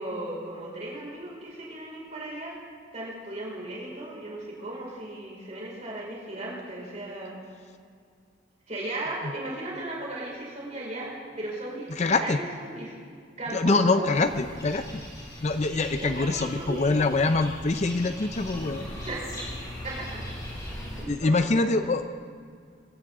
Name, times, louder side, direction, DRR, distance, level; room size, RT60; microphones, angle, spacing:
voice 1, 0.0-2.6 2.9-7.3 8.7-12.9 13.4-14.3 16.0-17.2 19.0-19.2 19.8-20.2 20.9-21.9, right 2 dB, 35° right, -4 dB, 5.2 m, -36 dB
voice 2, 11.9-12.4 13.5-15.0 15.4-18.9 21.1-22.0, left 3 dB, 35° left, 9 dB, 0.5 m, -24 dB
sound 1, 14.1-21.1, left 1 dB, 20° left, 5.2 m, -39 dB
23.0 x 16.0 x 3.7 m, 2.2 s
head